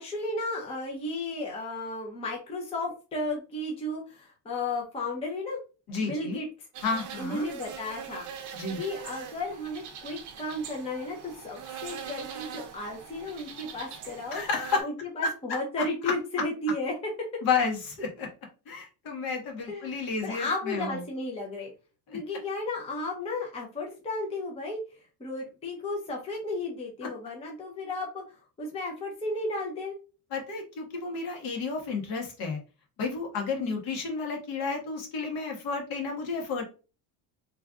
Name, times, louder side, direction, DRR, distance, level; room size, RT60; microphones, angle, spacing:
voice 1, 0.0-5.6 6.0-6.5 7.2-8.2 8.8-14.4 14.8-16.9 19.7-21.7 22.1-24.8 25.2-30.0 33.5-33.8, left 2 dB, 15° left, -1 dB, 0.6 m, -34 dB
voice 2, 5.9-6.4 6.8-7.4 8.5-8.8 14.3-14.8 17.4-18.3 18.7-21.0 22.1-22.2 30.3-32.6 33.0-36.6, left 4 dB, 60° left, 1 dB, 1.4 m, -31 dB
sound 1, 6.7-14.8, right 8 dB, 45° right, 0.7 m, -42 dB
3.2 x 2.5 x 3.6 m, 0.33 s
cardioid pair, 165°, 42 cm